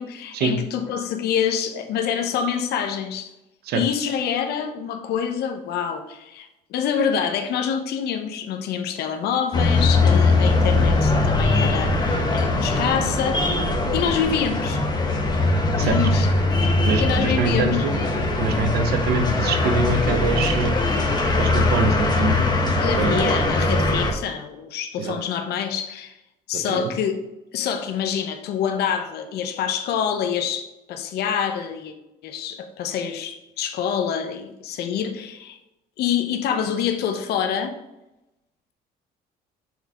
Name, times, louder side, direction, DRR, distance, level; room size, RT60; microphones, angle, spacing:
voice 1, 0.0-3.3 3.7-13.5 13.9-14.8 15.8-16.3 16.6-16.7 17.0-17.9 22.8-26.2 26.5-27.2 27.5-31.9 32.2-35.6 36.0-37.7, left 8 dB, 70° left, 6 dB, 0.8 m, -26 dB
sound 1, 9.5-24.1, left 2 dB, 25° left, 1.0 m, -21 dB
voice 2, 16.9-17.9 18.4-20.8 21.3-22.5 23.0-23.5 25.0-25.1 26.7-26.9, right 4 dB, 70° right, 6 dB, 0.9 m, -24 dB
6.3 x 3.4 x 4.8 m, 0.94 s
cardioid pair, 110°, 17 cm